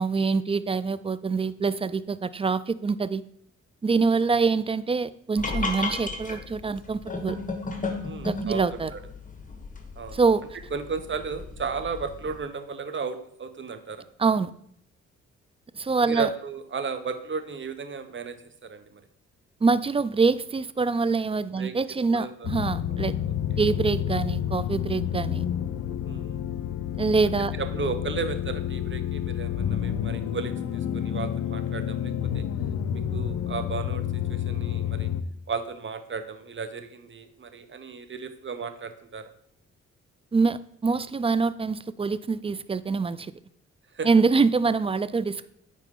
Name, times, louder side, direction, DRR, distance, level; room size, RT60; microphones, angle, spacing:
voice 1, 0.0-3.2 3.8-7.4 8.2-8.9 10.1-10.4 14.2-14.5 15.7-16.3 19.6-23.2 23.6-25.4 27.0-27.5 40.3-43.3 44.0-45.5, right 4 dB, 20° right, 16 dB, 0.3 m, -25 dB
sound 1, 5.4-12.4, left 3 dB, 25° left, 1.6 m, -35 dB
voice 2, 8.0-8.6 8.9-9.0 10.0-10.2 10.7-14.1 16.0-19.0 21.5-21.7 22.1-22.5 22.9-23.3 26.1-26.4 27.6-32.4 32.9-35.1 35.5-39.3 43.9-44.1, right 5 dB, 40° right, 9 dB, 0.9 m, -34 dB
sound 2, 22.4-35.2, left 10 dB, 75° left, 0.6 m, -29 dB
9.1 x 4.3 x 3.7 m, 0.67 s
supercardioid pair, 55°, 30 cm